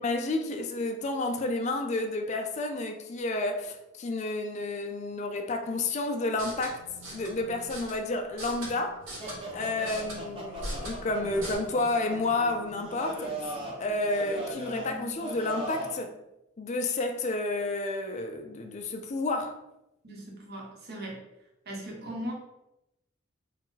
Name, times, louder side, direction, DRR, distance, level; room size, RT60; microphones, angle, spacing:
voice 1, 0.0-6.8 7.1-9.0 9.5-13.3 13.8-16.1 16.6-19.6, left 2 dB, 35° left, 0.4 m, -30 dB
sound 1, 6.3-11.5, right 1 dB, 65° right, 1.2 m, -42 dB
sound 2, 9.2-16.0, right 1 dB, 25° right, 0.8 m, -39 dB
voice 2, 20.0-21.2 21.7-22.3, equal, 50° right, 1.0 m, -39 dB
4.1 x 2.2 x 3.9 m
head